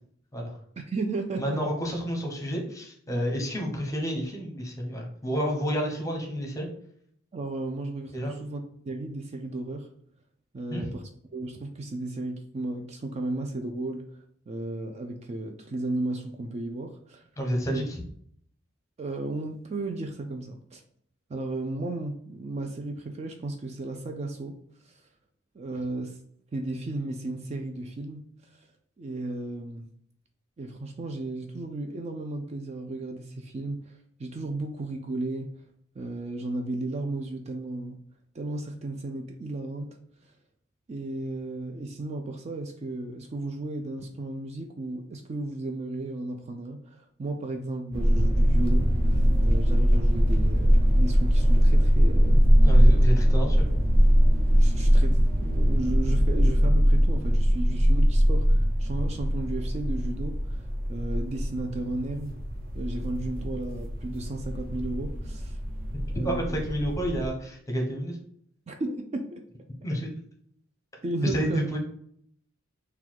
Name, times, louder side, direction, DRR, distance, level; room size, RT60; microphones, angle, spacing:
voice 1, 0.8-1.6 7.3-9.9 10.5-11.0 11.3-14.1 14.5-17.2 17.7-17.8 19.0-20.8 21.3-24.6 24.8-24.9 25.5-26.2 26.5-28.2 29.0-29.9 30.6-33.9 34.2-35.5 36.0-38.0 38.3-40.0 40.9-52.5 54.6-60.6 60.9-62.3 62.7-65.6 66.1-66.6 68.7-69.4 71.0-71.7, right 2 dB, 35° right, 4 dB, 0.4 m, -34 dB
voice 2, 1.4-6.7 8.1-8.3 10.7-10.9 17.4-17.8 52.6-53.7 66.2-68.2 69.8-70.1 71.3-71.8, equal, 15° left, 1 dB, 0.8 m, -30 dB
sound 1, 47.9-67.3, equal, 50° right, 0.8 m, -22 dB
3.9 x 2.2 x 4.5 m, 0.65 s
head